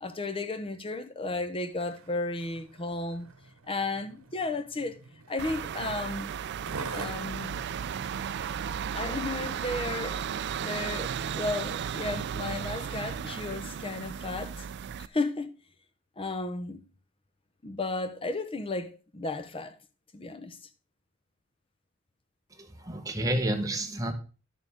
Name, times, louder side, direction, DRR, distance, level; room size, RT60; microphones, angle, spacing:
voice 1, 0.0-3.3 3.7-5.0 5.3-6.3 6.9-7.6 8.9-10.2 10.6-14.6 15.0-15.5 16.2-16.9 17.6-19.8 20.1-20.6, left 2 dB, 25° left, 0.7 m, -34 dB
Skateboard, 1.7-10.5 11.1-11.2, right 4 dB, 85° right, 1.0 m, -46 dB
sound 1, 5.4-15.1, right 8 dB, 55° right, 0.4 m, -35 dB
voice 2, 22.6-24.1, right 1 dB, 15° right, 1.1 m, -30 dB
11.0 x 6.8 x 3.5 m
head